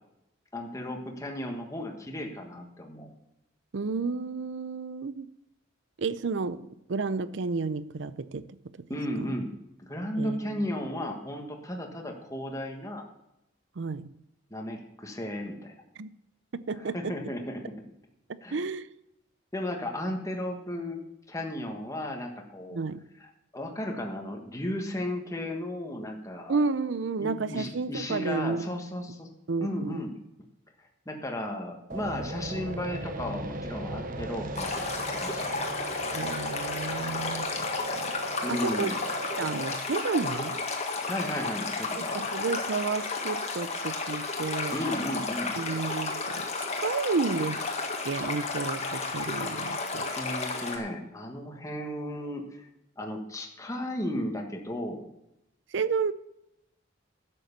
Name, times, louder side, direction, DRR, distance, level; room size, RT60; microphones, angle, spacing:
voice 1, 0.5-3.1 8.9-9.5 9.8-13.0 14.5-15.7 16.7-17.7 18.4-18.6 19.5-22.8 23.2-26.6 27.2-29.3 29.6-30.2 31.0-35.6 38.4-39.0 41.0-42.2 44.7-45.5 50.1-52.6 53.0-55.1, left 1 dB, 15° left, 1.4 m, -35 dB
voice 2, 3.7-5.3 6.0-8.5 8.8-8.9 9.2-9.3 10.2-10.7 13.8-14.1 16.0-16.1 16.5-17.2 18.5-18.9 22.7-23.0 26.5-28.7 29.5-30.0 36.1-37.7 37.9-38.1 38.5-38.9 39.4-40.6 41.9-44.8 45.6-46.5 46.8-47.7 48.0-50.1 55.7-56.1, right 4 dB, 65° right, 0.5 m, -31 dB
sound 1, 31.9-39.8, right 2 dB, 45° right, 0.8 m, -37 dB
Stream, 34.5-50.8, left 3 dB, 35° left, 1.6 m, -32 dB
12.0 x 7.7 x 6.7 m
head